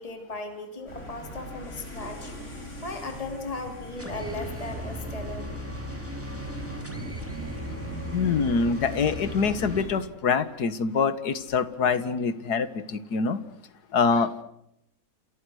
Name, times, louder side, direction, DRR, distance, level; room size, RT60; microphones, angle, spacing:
voice 1, 0.0-2.3 2.8-5.5, left 2 dB, 20° left, 5 dB, 3.2 m, -37 dB
sound 1, 0.9-10.0, equal, 45° left, 6.2 m, -40 dB
sound 2, 4.0-9.8, equal, 10° right, 3.4 m, -37 dB
voice 2, 8.1-13.4 13.9-14.4, left 5 dB, 70° left, 13 dB, 2.0 m, -25 dB
28.5 x 28.0 x 6.4 m, 0.79 s
omnidirectional pair, 1.8 m